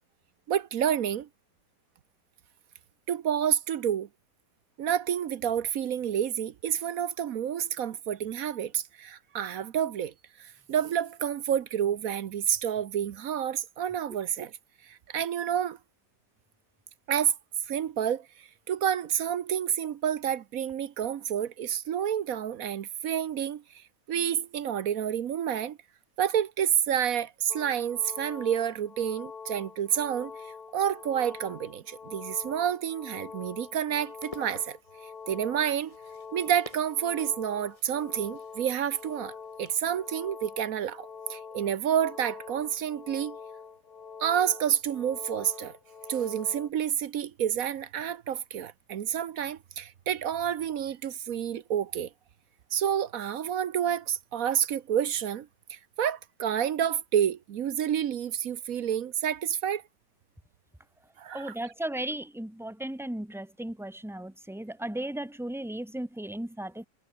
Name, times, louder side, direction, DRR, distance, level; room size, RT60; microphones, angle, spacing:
voice 1, 0.5-1.3 3.1-4.1 4.8-10.1 10.4-14.5 14.9-15.8 17.1-17.3 17.7-18.3 18.7-23.6 24.1-25.8 26.2-30.3 30.7-34.8 35.3-35.9 36.3-43.4 44.2-45.7 46.1-52.1 52.7-59.8 61.2-61.5, right 9 dB, 60° right, 1.1 m, -29 dB
sound 1, 27.5-46.7, left 5 dB, 60° left, 2.7 m, -45 dB
sound 2, 33.9-39.9, left 1 dB, 20° left, 5.5 m, -52 dB
voice 2, 61.3-66.9, right 1 dB, ahead, 1.3 m, -36 dB
omnidirectional pair, 1.9 m